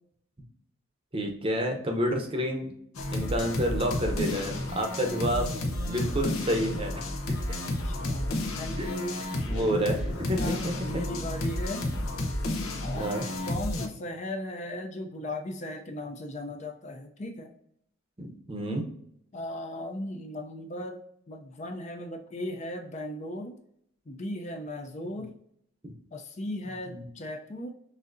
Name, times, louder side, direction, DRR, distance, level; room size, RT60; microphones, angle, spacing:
voice 1, 1.1-2.7 3.1-5.5 5.9-7.6 8.8-8.9 9.4-11.0 12.9-13.2 18.2-18.8 25.8-25.9 26.9-27.0, equal, 25° right, 2 dB, 0.7 m, -29 dB
sound 1, 2.9-13.9, left 1 dB, 80° left, 0.8 m, -31 dB
voice 2, 7.8-9.2 10.4-11.8 12.8-13.1 13.4-17.5 19.3-21.0 21.3-23.6 24.1-25.3 26.1-27.7, left 1 dB, 35° left, 3 dB, 0.5 m, -37 dB
6.2 x 2.7 x 2.6 m, 0.70 s
head